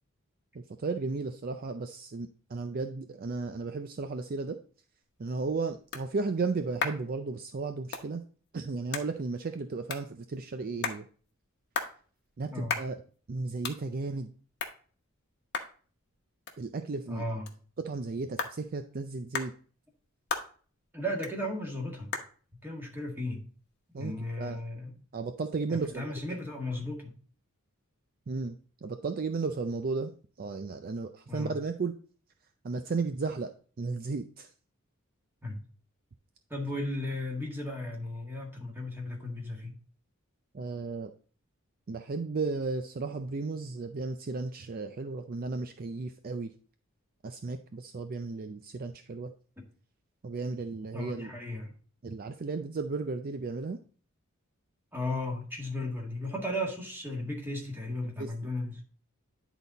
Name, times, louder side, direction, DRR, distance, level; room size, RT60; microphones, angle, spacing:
voice 1, 0.5-4.6 5.2-8.2 8.5-11.1 12.4-13.0 13.3-14.3 16.6-17.2 17.8-19.5 23.9-24.6 25.1-26.1 28.3-30.1 30.4-31.9 32.6-34.5 40.5-41.1 41.9-46.5 47.2-49.3 50.2-51.3 52.0-53.8 58.2-58.5, right 4 dB, 45° right, 8 dB, 0.4 m, -34 dB
sound 1, 5.0-24.3, left 5 dB, 50° left, 1.0 m, -41 dB
voice 2, 17.1-17.5 20.9-22.1 22.6-23.5 23.9-24.9 25.7-27.1 31.3-31.5 35.4-35.6 36.5-39.7 50.9-51.7 54.9-58.8, left 1 dB, 10° right, 0 dB, 1.8 m, -35 dB
10.5 x 4.0 x 4.0 m, 0.41 s
head